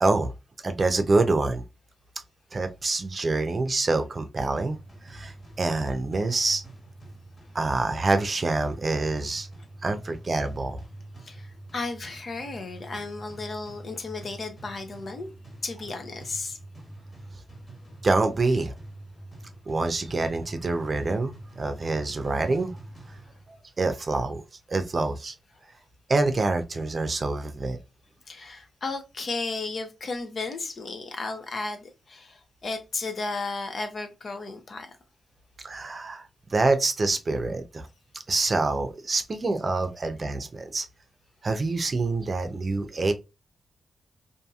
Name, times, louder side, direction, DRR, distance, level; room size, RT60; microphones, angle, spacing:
voice 1, 0.0-0.3 0.6-1.6 2.5-4.8 5.0-6.6 7.5-9.5 9.8-10.8 18.0-18.7 19.7-22.7 23.1-23.2 23.8-24.4 24.7-25.3 26.1-27.8 35.6-37.9 38.3-40.9 41.4-43.1, right 3 dB, 45° right, 0.6 m, -26 dB
sound 1, 4.7-23.7, right 1 dB, 40° left, 1.5 m, -46 dB
voice 2, 11.2-15.3 15.6-16.6 28.3-34.9, left 3 dB, 55° left, 0.8 m, -34 dB
2.7 x 2.7 x 2.3 m
cardioid pair, 60°, 0 cm